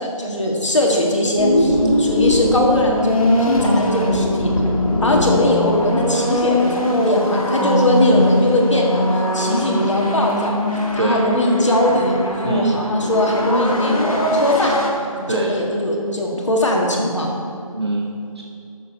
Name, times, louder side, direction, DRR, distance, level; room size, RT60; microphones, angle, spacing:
voice 1, 0.0-4.5 5.0-10.6 10.9-14.8 15.1-17.3, left 1 dB, 55° left, -1 dB, 1.6 m, -20 dB
sound 1, 1.4-14.9, left 1 dB, 75° left, 1.8 m, -21 dB
voice 2, 1.7-2.1 11.0-11.2 12.4-12.8 15.3-15.6 17.7-18.4, right 2 dB, 45° right, 1 dB, 0.6 m, -23 dB
8.7 x 6.6 x 5.2 m, 2.5 s
figure-of-eight pair, 175°, 18 cm